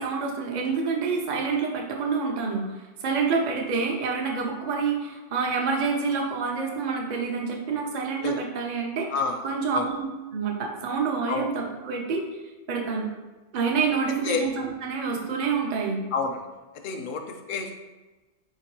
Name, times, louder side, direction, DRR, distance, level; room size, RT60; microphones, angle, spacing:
voice 1, 0.0-9.1 9.4-10.1 10.3-12.2 12.7-13.1 13.5-16.0, right 5 dB, 50° right, 0 dB, 0.6 m, -27 dB
voice 2, 9.1-9.4 9.7-9.9 11.3-11.5 14.2-14.5 16.1-16.4 16.8-17.7, left 5 dB, 60° left, 4 dB, 0.6 m, -29 dB
4.4 x 2.8 x 3.0 m, 1.2 s
omnidirectional pair, 1.2 m